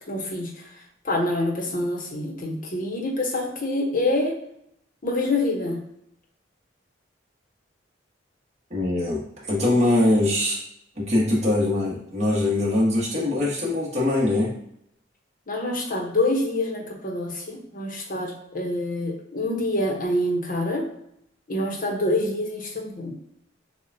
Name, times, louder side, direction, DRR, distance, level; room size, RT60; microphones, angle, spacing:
voice 1, 0.1-0.7 1.0-4.4 5.0-5.8 15.5-20.8 21.5-23.1, left 1 dB, 45° left, 0 dB, 1.0 m, -26 dB
voice 2, 8.7-10.6 11.0-14.5, left 1 dB, 35° right, -5 dB, 1.4 m, -22 dB
6.6 x 2.4 x 2.7 m, 0.74 s
head